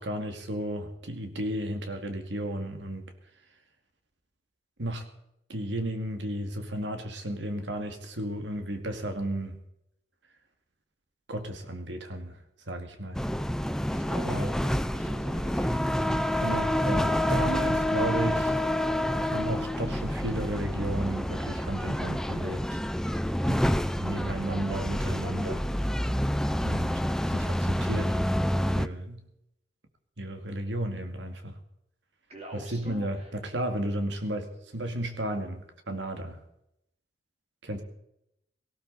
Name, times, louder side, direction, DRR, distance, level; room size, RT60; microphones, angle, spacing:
voice 1, 0.0-3.1 4.8-5.1 5.5-9.6 11.3-12.4 12.7-13.2 14.2-14.5 16.4-18.6 19.2-22.8 23.5-25.7 26.6-26.9 27.3-28.2 28.6-29.2 30.2-31.6 32.5-36.4 37.6-37.8, right 1 dB, 90° right, 6 dB, 2.2 m, -33 dB
sound 1, 13.1-28.9, left 1 dB, 5° left, 0.5 m, -28 dB
voice 2, 13.9-16.2 32.3-33.3, right 1 dB, 40° right, 1 dB, 3.6 m, -44 dB
18.0 x 16.5 x 4.1 m, 0.80 s
head